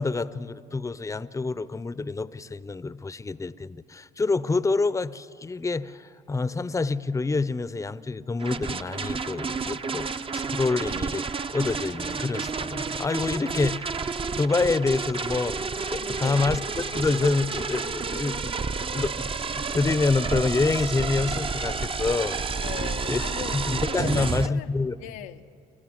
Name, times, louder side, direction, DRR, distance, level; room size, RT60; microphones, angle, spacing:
voice 1, 0.0-15.6 15.9-16.6 16.9-18.5 18.8-22.4 23.1-23.2 23.5-25.0, left 3 dB, 15° left, 0.7 m, -27 dB
sound 1, 8.4-24.5, right 4 dB, 30° right, 0.7 m, -30 dB
voice 2, 16.0-16.5 22.6-23.6 23.9-24.7 25.0-25.5, left 12 dB, 90° left, 0.8 m, -39 dB
27.5 x 15.0 x 7.7 m
supercardioid pair, 65°, 18 cm